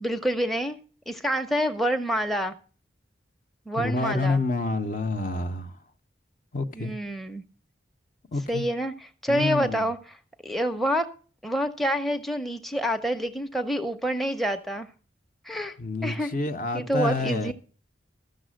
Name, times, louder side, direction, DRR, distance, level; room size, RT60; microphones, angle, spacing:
voice 1, 0.0-0.8 1.1-2.5 3.7-4.4 6.7-7.4 8.5-10.0 10.4-11.1 11.4-14.9 15.4-15.8 16.0-16.3 16.7-17.5, equal, ahead, 0.6 m, -27 dB
voice 2, 3.8-5.8 6.5-6.9 8.3-8.7 9.3-9.9 15.8-17.5, left 2 dB, 45° left, 0.7 m, -28 dB
13.5 x 6.4 x 6.2 m
head